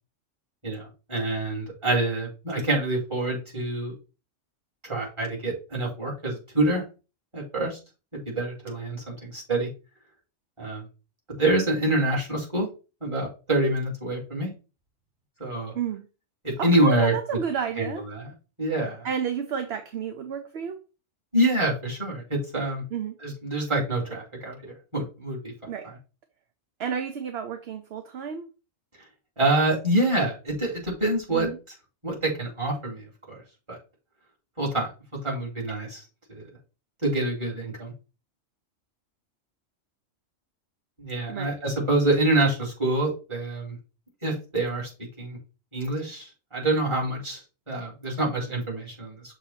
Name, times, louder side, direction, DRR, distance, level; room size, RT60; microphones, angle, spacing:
voice 1, 0.6-3.9 4.8-6.8 7.3-7.8 8.3-9.7 10.6-10.8 11.4-12.7 13.0-14.5 15.4-15.7 16.4-17.1 17.8-18.3 18.6-19.1 21.3-22.8 23.2-25.5 29.4-31.5 32.0-33.4 33.7-33.8 34.6-34.9 35.2-36.0 36.3-36.4 37.0-37.9 41.0-43.8 44.2-44.9 45.2-45.4 45.7-47.4 47.7-49.3, right 1 dB, 20° right, 2.6 m, -26 dB
voice 2, 15.7-16.1 16.6-18.0 19.0-20.8 22.9-23.2 25.7-25.9 26.8-28.5 31.3-31.6 41.3-41.6, right 7 dB, 60° right, 0.9 m, -31 dB
6.6 x 2.8 x 5.6 m
omnidirectional pair, 1.3 m